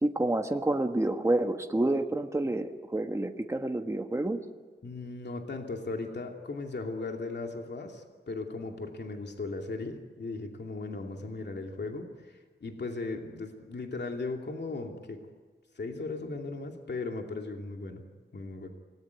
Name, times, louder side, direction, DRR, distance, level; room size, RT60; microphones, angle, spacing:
voice 1, 0.0-4.4, right 2 dB, 15° right, 5 dB, 1.4 m, -28 dB
voice 2, 4.8-15.3 15.8-18.0 18.3-18.7, left 3 dB, 65° left, 3 dB, 2.6 m, -37 dB
26.5 x 19.5 x 9.4 m, 1.4 s
wide cardioid pair, 120°, 19 cm